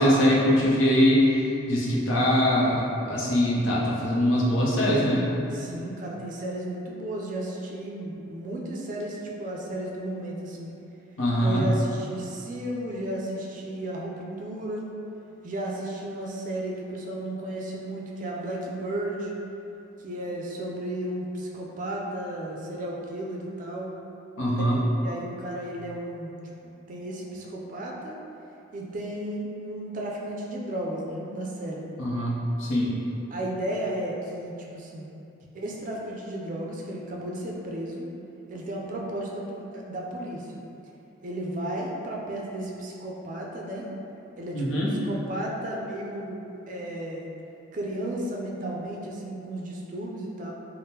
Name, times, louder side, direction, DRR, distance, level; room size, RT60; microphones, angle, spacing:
voice 1, 0.0-5.3 11.2-11.6 24.4-24.8 32.0-32.9 44.5-44.9, equal, 85° left, -5 dB, 0.6 m, -22 dB
voice 2, 5.5-10.7 11.4-14.9 15.4-19.3 20.0-23.9 24.5-24.6 24.9-26.3 26.6-28.2 28.7-31.9 33.3-35.1 35.5-38.1 38.5-40.5 41.2-43.9 44.4-47.3 47.7-50.5, right 1 dB, 40° right, -2 dB, 0.3 m, -34 dB
3.5 x 2.0 x 2.8 m, 2.8 s
head